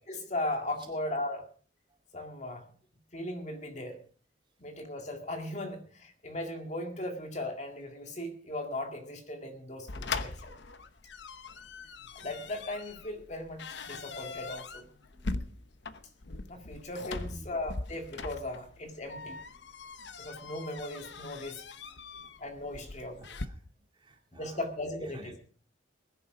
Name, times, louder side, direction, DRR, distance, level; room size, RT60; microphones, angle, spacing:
voice 1, 0.1-1.5 2.1-2.7 3.1-4.0 4.6-10.5 12.1-14.9 16.5-19.4 20.2-21.6 22.4-23.2 24.3-25.3, left 1 dB, 35° left, 5 dB, 2.1 m, -37 dB
sound 1, 9.9-23.5, left 3 dB, 60° left, 0.9 m, -41 dB
voice 2, 15.1-15.5 17.1-17.5 19.0-19.3 22.2-22.3 22.7-22.9 23.2-23.6 23.9-25.4, right 1 dB, 25° right, 3 dB, 2.4 m, -50 dB
20.5 x 11.0 x 4.7 m, 0.44 s
head